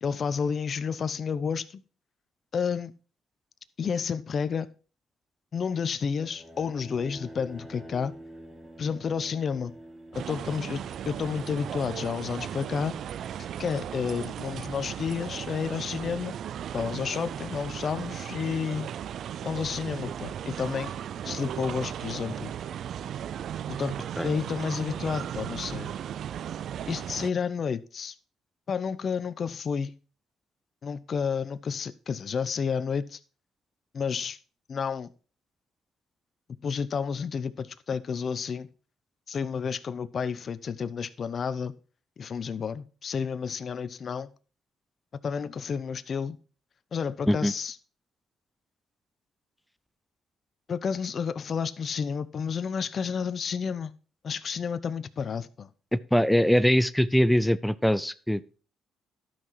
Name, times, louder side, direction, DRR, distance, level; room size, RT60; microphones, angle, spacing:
voice 1, 0.0-1.8 2.5-2.9 3.8-4.7 5.5-8.1 8.8-9.7 10.1-12.9 13.6-16.4 16.7-18.9 19.4-20.9 21.2-22.5 23.7-25.9 26.9-28.1 28.7-30.0 30.8-33.2 33.9-34.4 34.7-35.1 36.6-38.7 39.3-41.7 42.2-44.3 45.2-46.4 46.9-47.8 50.7-53.9 54.2-55.7, left 6 dB, 50° left, 0.8 m, -31 dB
sound 1, 6.0-11.4, right 1 dB, 20° right, 3.1 m, -47 dB
sound 2, 10.1-27.3, right 9 dB, 65° right, 0.4 m, -36 dB
voice 2, 55.9-58.6, equal, 5° left, 0.6 m, -23 dB
12.0 x 5.9 x 4.6 m
cardioid pair, 85°, 0 cm